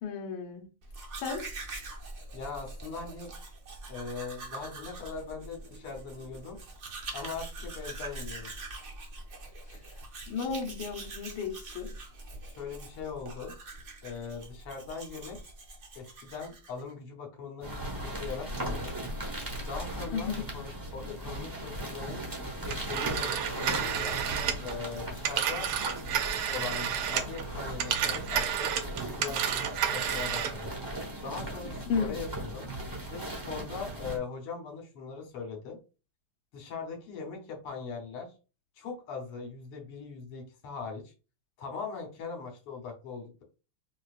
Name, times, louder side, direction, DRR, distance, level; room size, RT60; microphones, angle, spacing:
voice 1, 0.0-0.6 1.2-1.4 9.7-9.8 10.3-11.9 20.1-20.4 31.9-32.1, left 5 dB, 65° left, -1 dB, 1.5 m, -33 dB
Domestic sounds home sounds, 0.8-16.9, right 2 dB, 65° right, 0.7 m, -44 dB
voice 2, 2.3-3.3 3.9-6.6 7.1-8.5 12.5-13.5 14.0-15.4 16.0-19.0 19.7-22.2 22.7-24.2 24.6-25.7 26.5-28.7 29.0-30.7 31.2-32.7 33.1-35.8 36.5-38.3 38.8-41.1 41.6-43.4, left 5 dB, 85° left, 1 dB, 1.9 m, -40 dB
sound 1, 17.6-34.2, right 1 dB, 25° right, 0.4 m, -38 dB
Telephone, 22.7-27.4 27.7-30.6, right 9 dB, 85° right, 1.5 m, -31 dB
4.8 x 2.3 x 2.4 m, 0.32 s
omnidirectional pair, 2.4 m